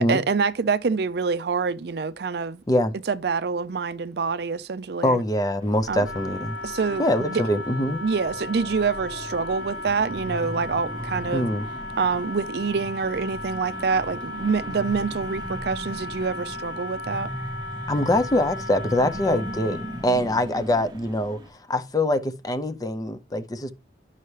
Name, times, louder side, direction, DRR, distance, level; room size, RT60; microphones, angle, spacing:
voice 1, 0.0-2.6 3.1-5.2 5.9-6.1 6.6-7.4 8.0-11.5 12.0-17.3, right 5 dB, 60° right, 0.5 m, -26 dB
voice 2, 5.0-6.6 7.0-8.0 11.3-11.7 17.9-23.7, left 1 dB, 20° left, 0.5 m, -24 dB
sound 1, 5.6-21.5, right 1 dB, 25° right, 0.8 m, -38 dB
Wind instrument woodwind instrument, 6.0-20.1, left 2 dB, 75° left, 0.5 m, -36 dB
10.5 x 5.5 x 3.2 m
head